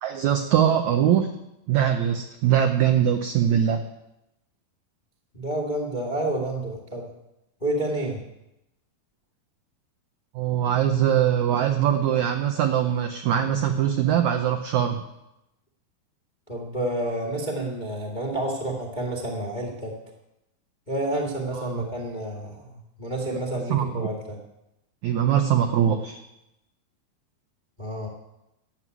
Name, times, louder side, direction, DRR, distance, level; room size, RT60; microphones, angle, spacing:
voice 1, 0.0-1.3 1.7-3.8 10.3-15.0 21.5-21.8 23.3-23.4 23.7-24.1 25.0-26.2, right 10 dB, 90° right, 6 dB, 1.6 m, -22 dB
voice 2, 5.3-7.1 7.6-8.2 16.5-19.9 20.9-24.4 27.8-28.1, right 1 dB, 25° left, 0 dB, 0.9 m, -29 dB
12.0 x 7.6 x 9.4 m, 0.90 s
omnidirectional pair, 4.4 m